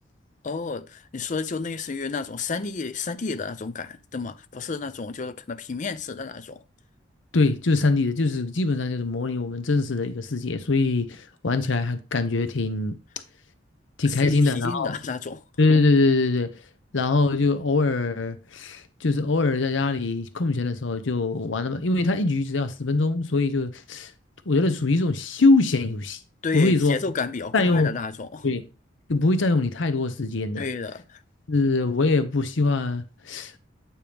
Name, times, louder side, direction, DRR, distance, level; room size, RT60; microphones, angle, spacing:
voice 1, 0.4-6.6 14.0-15.4 26.4-28.5 30.6-31.2, left 4 dB, 40° left, 0.5 m, -31 dB
voice 2, 7.3-13.0 14.0-15.0 15.6-16.5 16.9-24.1 24.5-26.2 26.5-27.0 27.5-27.9 28.4-28.7 29.1-30.7 31.5-33.6, left 3 dB, 80° left, 0.8 m, -23 dB
8.8 x 4.4 x 3.4 m
head